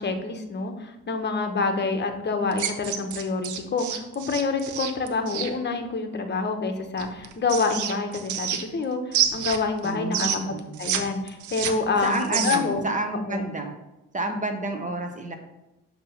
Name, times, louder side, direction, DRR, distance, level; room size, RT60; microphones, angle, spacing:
voice 1, 0.0-10.5 10.8-12.8 13.3-13.4, left 4 dB, 35° left, 6 dB, 0.9 m, -27 dB
sound 1, 2.5-5.5 7.0-8.8 9.1-11.0 11.3-12.8, right 9 dB, 75° right, 0.7 m, -28 dB
voice 2, 9.8-10.8 12.0-13.7 14.1-15.4, right 2 dB, 25° right, 5 dB, 0.9 m, -29 dB
7.3 x 2.9 x 5.6 m, 0.99 s
cardioid pair, 90°, 30 cm